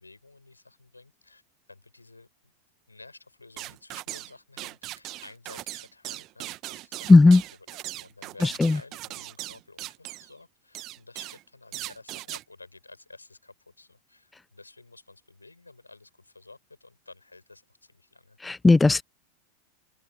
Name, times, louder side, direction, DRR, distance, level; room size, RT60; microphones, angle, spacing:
voice 1, 0.0-1.4 1.7-2.5 2.9-7.4 7.7-18.4, left 3 dB, 80° left, 7.2 m, -52 dB
sound 1, 3.6-4.3 4.6-10.3 10.7-11.4 11.7-12.4, right 17 dB, 35° right, 1.7 m, -39 dB
voice 2, 7.1-7.4 8.4-8.8 18.4-19.0, left 3 dB, 10° left, 0.6 m, -16 dB
open air
figure-of-eight pair, 90°, 0 cm